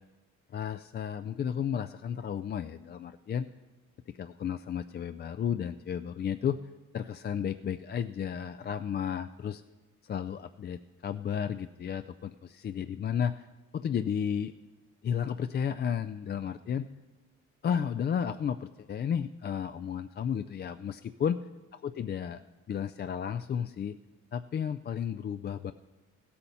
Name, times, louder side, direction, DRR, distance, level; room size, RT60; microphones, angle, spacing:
voice 1, 0.5-3.5 4.1-6.6 6.9-9.6 10.0-13.5 13.7-14.5 15.0-16.9 17.6-21.4 21.8-22.4 22.7-24.0 24.3-25.7, left 8 dB, 35° left, 10 dB, 0.4 m, -33 dB
15.0 x 8.5 x 5.5 m, 1.2 s
cardioid pair, 90°, 30 cm